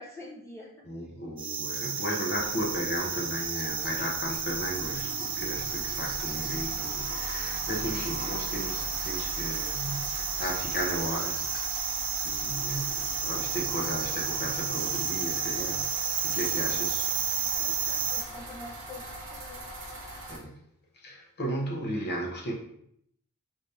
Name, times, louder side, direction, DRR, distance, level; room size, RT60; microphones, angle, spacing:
voice 1, 0.0-0.7 16.6-16.8 17.6-19.6, left 2 dB, 15° left, -4 dB, 0.7 m, -46 dB
voice 2, 0.9-16.0 16.2-17.1 20.3-20.6 21.0-22.5, equal, 50° left, -1 dB, 0.8 m, -35 dB
sound 1, 1.4-18.2, right 6 dB, 25° right, 0.3 m, -32 dB
sound 2, 2.4-20.4, right 1 dB, 60° right, 1.6 m, -41 dB
4.9 x 3.3 x 2.7 m, 0.70 s
head